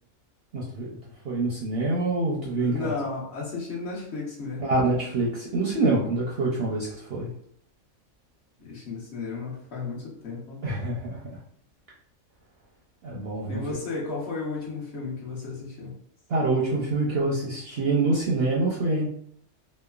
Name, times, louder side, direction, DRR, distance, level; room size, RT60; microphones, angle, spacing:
voice 1, 0.5-2.9 4.6-7.3 10.6-11.4 13.0-13.6 16.3-19.1, right 2 dB, 65° right, -4 dB, 0.6 m, -26 dB
voice 2, 2.6-4.6 8.6-10.6 13.5-15.9, left 3 dB, 55° left, -4 dB, 1.0 m, -34 dB
3.1 x 2.0 x 2.3 m, 0.67 s
omnidirectional pair, 1.4 m